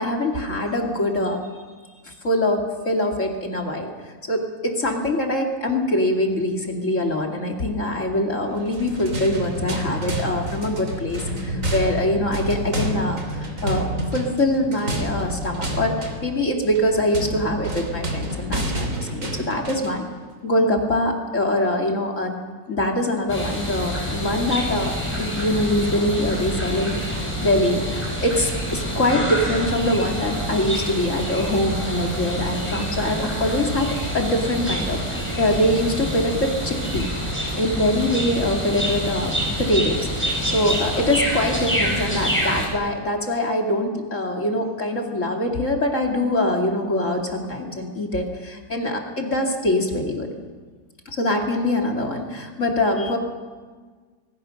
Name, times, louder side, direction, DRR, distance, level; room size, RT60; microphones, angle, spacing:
voice 1, 0.0-1.4 2.0-13.9 14.1-20.1 20.4-22.4 22.7-37.1 37.6-39.3 39.6-50.3 51.1-53.2, left 1 dB, 35° left, 2 dB, 2.7 m, -23 dB
sound 1, 8.6-20.0, equal, 35° right, 3.4 m, -29 dB
sound 2, 23.3-42.7, equal, 5° left, 5.1 m, -27 dB
26.0 x 20.0 x 6.5 m, 1.5 s
omnidirectional pair, 2.3 m